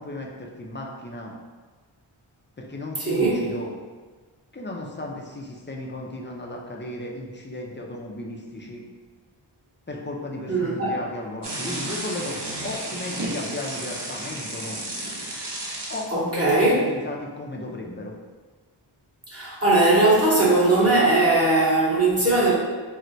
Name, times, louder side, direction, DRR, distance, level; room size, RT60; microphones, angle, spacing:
voice 1, 0.0-1.3 2.6-3.8 4.5-8.9 9.9-14.8 15.9-18.1, left 2 dB, 25° left, -1 dB, 0.4 m, -35 dB
voice 2, 3.0-3.4 10.5-10.9 16.1-16.8 19.3-22.5, right 2 dB, 30° right, -7 dB, 1.0 m, -19 dB
sound 1, 11.4-16.0, right 1 dB, 60° right, 0.8 m, -32 dB
4.3 x 2.1 x 2.6 m, 1.4 s
wide cardioid pair, 50°, 47 cm